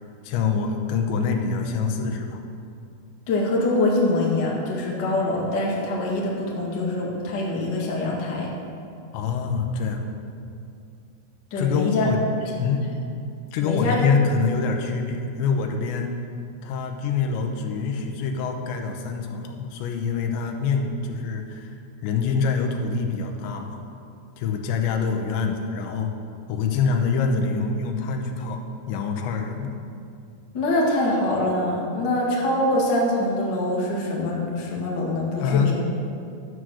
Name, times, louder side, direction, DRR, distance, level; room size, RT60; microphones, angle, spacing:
voice 1, 0.2-2.4 9.1-10.1 11.6-12.2 12.6-12.9 13.5-16.1 16.6-21.7 22.0-23.8 24.4-26.1 26.5-29.7 35.4-35.7, left 5 dB, 85° left, 3 dB, 3.2 m, -25 dB
voice 2, 3.3-8.5 11.5-12.1 12.4-12.5 13.6-14.1 30.5-35.7, left 1 dB, 40° left, -4 dB, 1.5 m, -24 dB
11.5 x 7.9 x 6.3 m, 2.4 s
omnidirectional pair, 5.1 m